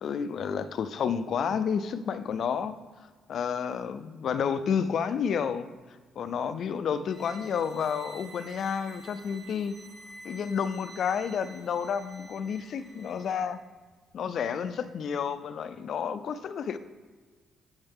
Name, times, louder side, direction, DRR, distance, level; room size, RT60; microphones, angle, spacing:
voice 1, 0.0-2.7 3.3-5.7 6.2-9.7 10.2-13.6 14.1-16.8, left 7 dB, 60° left, 12 dB, 0.5 m, -30 dB
sound 1, 7.1-13.4, right 2 dB, 30° right, 1.4 m, -50 dB
7.9 x 6.5 x 3.5 m, 1.4 s
cardioid pair, 95°, 0 cm